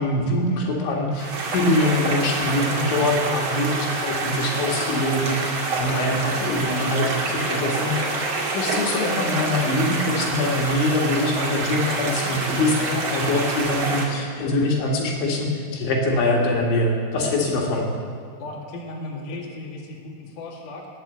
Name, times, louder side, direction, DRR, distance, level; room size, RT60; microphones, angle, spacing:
voice 1, 0.0-8.2 8.5-17.9, left 1 dB, 65° left, -1 dB, 3.9 m, -23 dB
sound 1, 1.1-14.0, right 3 dB, 45° right, 2.2 m, -27 dB
voice 2, 18.4-21.0, left 2 dB, 50° left, -2 dB, 2.7 m, -36 dB
20.0 x 8.5 x 8.0 m, 2.3 s
omnidirectional pair, 6.0 m